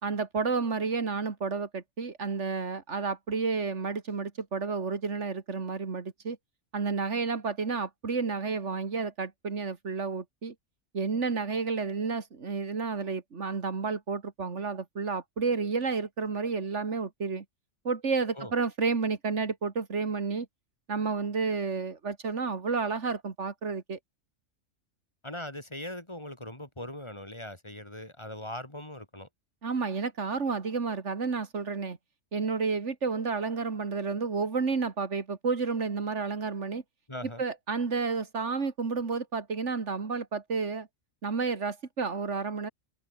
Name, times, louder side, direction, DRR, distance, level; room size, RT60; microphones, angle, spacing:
voice 1, 0.0-6.4 6.7-10.5 10.9-17.4 17.8-20.5 20.9-24.0 29.6-32.0 32.3-36.8 37.4-40.9 41.2-42.7, right 4 dB, 55° right, 2.3 m, -31 dB
voice 2, 25.2-29.3 37.1-37.4, left 1 dB, 20° left, 2.7 m, -40 dB
open air
omnidirectional pair, 1.4 m